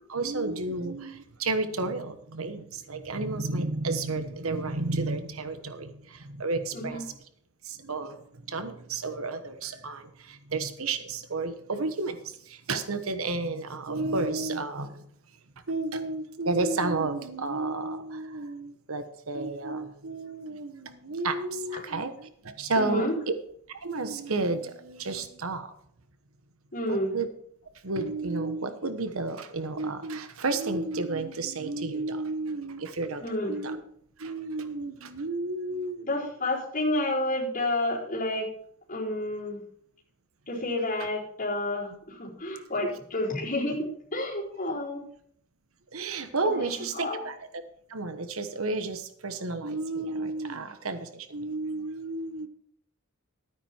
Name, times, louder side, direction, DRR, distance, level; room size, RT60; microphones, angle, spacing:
voice 1, 0.1-7.1 7.6-15.1 15.7-23.3 23.7-25.7 26.9-27.3 27.8-33.8 34.2-36.1 45.9-47.6 47.9-52.5, right 3 dB, 80° right, 9 dB, 1.2 m, -32 dB
voice 2, 22.8-23.1 26.7-27.2 33.2-33.5 36.0-38.5 38.9-39.6 40.5-45.0 46.4-47.2, left 1 dB, 40° left, -6 dB, 4.3 m, -30 dB
12.5 x 9.6 x 4.5 m, 0.64 s
head